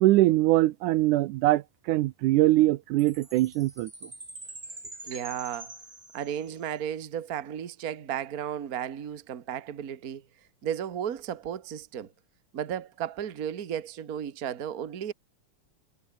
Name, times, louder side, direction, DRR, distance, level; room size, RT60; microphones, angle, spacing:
voice 1, 0.0-3.9, right 17 dB, 85° right, 2.2 m, -22 dB
Chime, 3.0-6.7, right 1 dB, 15° right, 6.7 m, -45 dB
voice 2, 5.0-5.7 6.1-10.2 10.6-12.1 12.5-15.1, right 9 dB, 40° right, 1.4 m, -34 dB
omnidirectional pair, 3.6 m